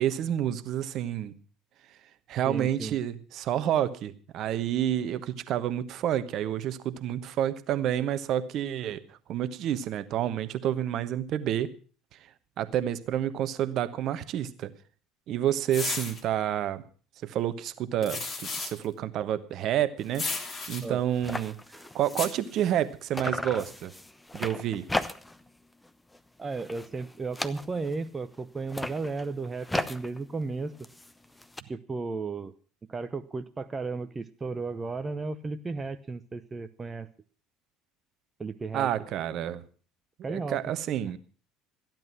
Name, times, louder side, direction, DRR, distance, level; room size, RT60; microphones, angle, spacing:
voice 1, 0.0-1.3 2.3-9.0 9.3-11.7 12.6-14.7 15.3-16.8 17.2-18.2 18.6-20.2 20.7-21.6 21.9-23.9 24.3-24.8 38.7-39.6 40.3-41.2, right 11 dB, 50° right, 13 dB, 1.1 m, -29 dB
voice 2, 2.5-3.0 20.8-21.0 26.4-30.8 31.7-32.5 32.9-37.1 38.4-38.9 40.2-40.6, right 4 dB, 20° right, 10 dB, 0.8 m, -34 dB
sound 1, 15.7-16.2 18.0-18.8 20.1-20.8 22.1-22.3, left 4 dB, 35° left, 2.9 m, -33 dB
sound 2, 20.0-20.2 20.6-20.7 20.9-22.9 23.1-25.5 25.8-26.2 26.5-28.0 28.6-31.6, left 1 dB, 10° left, 1.0 m, -36 dB
14.5 x 10.5 x 6.1 m, 0.41 s
figure-of-eight pair, 60°, 0 cm